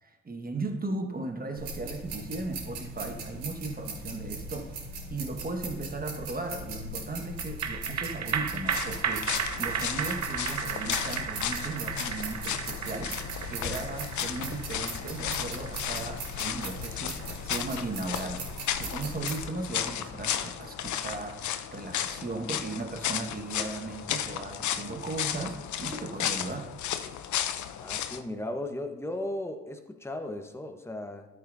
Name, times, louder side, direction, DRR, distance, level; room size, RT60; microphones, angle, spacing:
voice 1, 0.0-4.8 5.1-26.7, right 3 dB, 25° right, 4 dB, 1.6 m, -37 dB
sound 1, 1.5-19.4, right 2 dB, 75° right, 3.0 m, -39 dB
sound 2, 7.4-20.0 20.4-20.5, right 7 dB, 50° right, 1.1 m, -35 dB
sound 3, 8.7-28.2, left 10 dB, 55° left, 0.7 m, -34 dB
voice 2, 27.8-31.3, left 1 dB, 5° left, 6 dB, 1.1 m, -36 dB
13.0 x 7.3 x 2.7 m, 1.1 s
hypercardioid pair, 45°, 35 cm